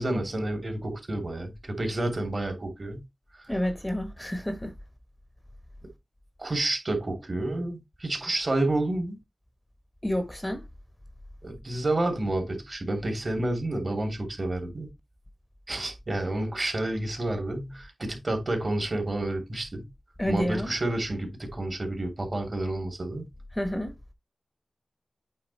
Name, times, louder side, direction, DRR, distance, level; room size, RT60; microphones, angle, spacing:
voice 1, 0.0-3.0 6.4-9.2 11.4-14.9 15.7-19.9 20.3-23.2, right 2 dB, 40° right, 2.9 m, -29 dB
voice 2, 3.5-4.7 10.0-10.6 20.2-20.7 23.5-23.9, left 1 dB, 10° left, 1.1 m, -29 dB
8.6 x 4.0 x 4.1 m
wide cardioid pair, 80°, 0 cm